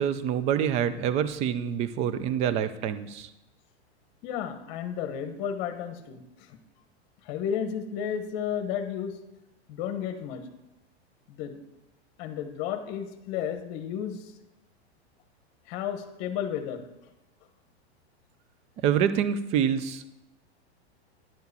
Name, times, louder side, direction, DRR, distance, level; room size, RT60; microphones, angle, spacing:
voice 1, 0.0-3.3 18.8-20.1, right 9 dB, 20° right, 13 dB, 0.3 m, -26 dB
voice 2, 4.2-6.6 7.2-9.2 9.7-10.5 11.3-11.6 12.2-14.3 15.7-16.9, left 8 dB, 45° left, 9 dB, 1.1 m, -33 dB
10.5 x 4.7 x 6.7 m, 0.95 s
supercardioid pair, 140°, 33 cm